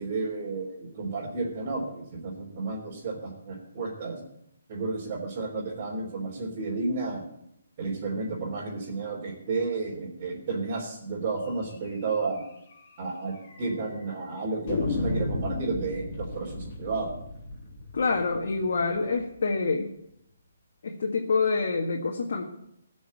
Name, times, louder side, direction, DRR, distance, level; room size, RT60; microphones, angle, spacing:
voice 1, 0.0-4.2 4.7-7.2 7.8-12.4 13.0-17.1, right 3 dB, 35° right, -6 dB, 3.8 m, -32 dB
sound 1, 11.9-12.0 12.3-12.4 12.7-12.8 13.4-14.0 14.7-19.5, left 2 dB, 40° left, 4.3 m, -34 dB
voice 2, 17.9-19.9 20.8-22.4, left 4 dB, 65° left, 1 dB, 1.9 m, -26 dB
16.5 x 6.5 x 8.7 m, 0.77 s
hypercardioid pair, 155°, 0 cm